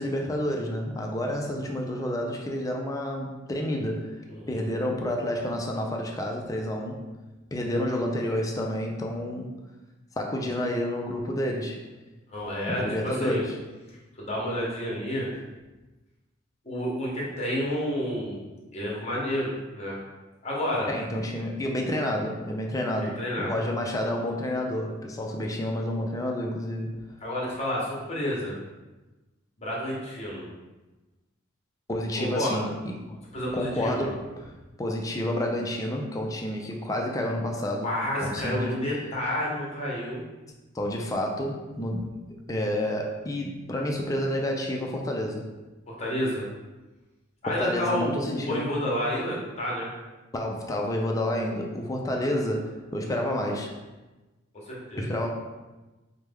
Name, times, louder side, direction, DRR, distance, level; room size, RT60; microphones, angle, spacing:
voice 1, 0.0-4.1 4.5-7.0 7.5-9.6 10.2-11.8 12.7-13.6 20.9-27.0 31.9-33.2 33.5-34.2 34.8-37.9 38.2-38.8 40.7-42.1 42.5-45.5 47.5-48.7 50.3-53.7 55.0-55.3, left 1 dB, 15° left, 1 dB, 0.4 m, -29 dB
voice 2, 4.3-4.6 12.3-13.4 14.2-15.3 16.6-18.4 18.7-20.0 20.4-20.9 23.0-23.5 27.2-28.5 29.6-30.4 32.2-32.6 33.3-34.1 37.8-40.2 45.9-46.5 47.4-49.9 52.2-52.3 54.5-55.1, equal, 30° left, -4 dB, 1.0 m, -30 dB
4.6 x 2.2 x 3.4 m, 1.1 s
head